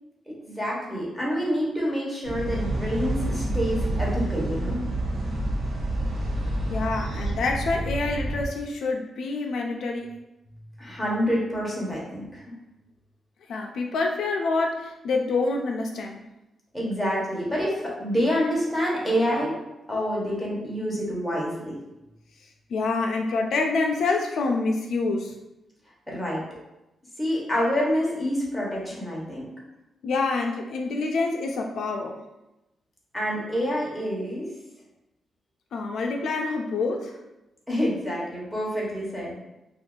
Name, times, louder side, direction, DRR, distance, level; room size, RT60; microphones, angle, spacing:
voice 1, 0.3-4.8 10.8-12.5 16.7-19.5 19.9-21.8 26.1-26.6 27.2-29.5 33.1-34.5 37.7-39.4, equal, ahead, -5 dB, 0.8 m, -27 dB
sound 1, 2.2-8.5, right 1 dB, 75° right, 0.7 m, -28 dB
voice 2, 6.7-10.1 13.5-16.2 22.7-25.4 30.0-32.2 35.7-37.2, left 3 dB, 70° left, 1 dB, 0.3 m, -27 dB
2.6 x 2.3 x 3.7 m, 0.95 s
wide cardioid pair, 165°, 0 cm